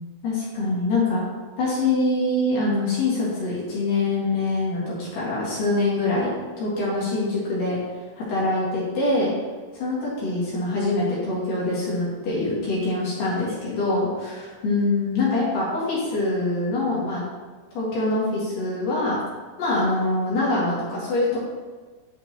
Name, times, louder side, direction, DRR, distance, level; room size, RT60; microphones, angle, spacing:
voice 1, 0.2-1.2 1.6-9.3 9.7-17.2 17.7-19.2 19.6-21.4, left 2 dB, 55° left, -7 dB, 3.1 m, -24 dB
9.9 x 5.2 x 2.9 m, 1.4 s
omnidirectional pair, 4.9 m